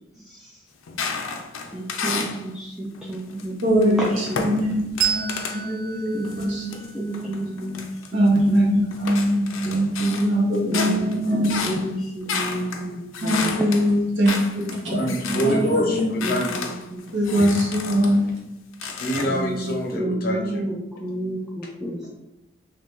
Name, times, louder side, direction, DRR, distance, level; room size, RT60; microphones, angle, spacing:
sound 1, 0.9-2.4 2.9-5.6 6.2-8.6 8.9-15.6 15.9-18.2 18.7-19.7, left 5 dB, 85° left, 0.4 m, -32 dB
voice 1, 1.7-3.6 3.8-4.1 4.5-4.8 6.1-7.8 8.1-8.8 10.6-13.5 14.8-15.4 16.3-16.6 16.9-17.4 19.3-22.0, right 1 dB, ahead, 0.3 m, -30 dB
voice 2, 3.6-6.9 8.1-11.8 13.2-14.3 14.8-14.9 15.4-15.5 15.8-16.1 17.1-18.3, equal, 70° right, 1.1 m, -22 dB
Bell, 5.0-8.1, right 8 dB, 85° right, 0.4 m, -31 dB
voice 3, 14.9-16.7 19.0-20.7, equal, 50° left, 0.7 m, -25 dB
2.9 x 2.7 x 3.6 m
head